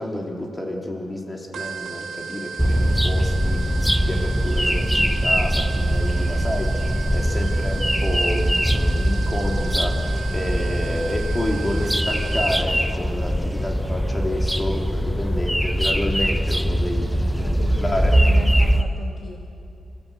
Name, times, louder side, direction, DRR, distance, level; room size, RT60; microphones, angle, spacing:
voice 1, 0.0-6.8 7.1-18.1, left 1 dB, 20° left, 0 dB, 3.3 m, -29 dB
sound 1, 1.5-12.9, right 6 dB, 80° right, 1.4 m, -35 dB
sound 2, 2.6-18.8, equal, ahead, 0.8 m, -22 dB
voice 2, 17.0-19.4, left 4 dB, 65° left, 2 dB, 1.6 m, -37 dB
27.5 x 15.5 x 8.2 m, 2.7 s
wide cardioid pair, 125°, 0 cm